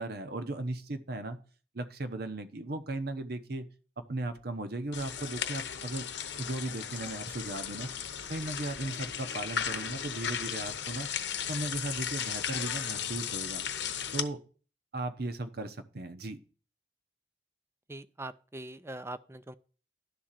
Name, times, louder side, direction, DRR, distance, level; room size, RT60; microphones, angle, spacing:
voice 1, 0.0-1.4 1.7-3.7 4.1-6.1 6.4-7.9 8.3-11.1 11.5-13.6 14.1-14.4 14.9-16.4, right 2 dB, 60° right, 0.9 m, -36 dB
sound 1, 4.9-14.2, left 8 dB, 75° left, 0.9 m, -36 dB
voice 2, 17.9-19.5, right 2 dB, 15° right, 0.5 m, -42 dB
11.5 x 3.8 x 7.4 m
head